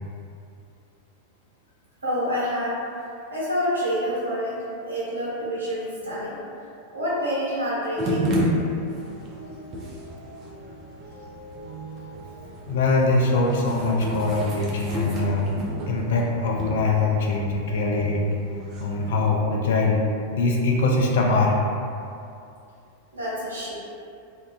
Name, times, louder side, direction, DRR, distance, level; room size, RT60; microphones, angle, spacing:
voice 1, 2.0-2.8 3.3-4.6 4.8-6.4 6.9-8.3 23.1-23.7, equal, 75° right, -8 dB, 0.7 m, -27 dB
sound 1, 8.0-19.3, equal, 30° right, 0.4 m, -32 dB
voice 2, 12.7-15.5 15.9-18.2 18.8-20.0 20.3-21.6, left 3 dB, 60° left, 0 dB, 0.3 m, -22 dB
2.3 x 2.1 x 2.5 m, 2.5 s
figure-of-eight pair, 90°, 0 cm